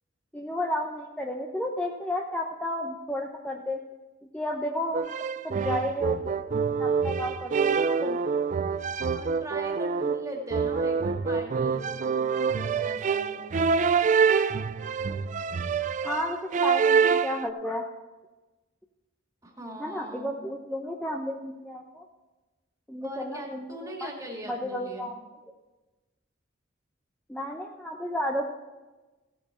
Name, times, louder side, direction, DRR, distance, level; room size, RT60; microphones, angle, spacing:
voice 1, 0.3-3.8 4.2-5.1 5.4-6.4 6.8-8.2 16.0-17.8 19.8-22.0 22.9-24.1 24.4-25.2 27.3-28.4, left 1 dB, 5° left, 0 dB, 0.8 m, -32 dB
sound 1, 4.9-17.5, right 6 dB, 40° right, 0.4 m, -26 dB
voice 2, 9.1-13.6 19.4-20.3 23.0-25.1, equal, 15° right, 0 dB, 2.4 m, -40 dB
15.5 x 8.7 x 4.4 m, 1.2 s
head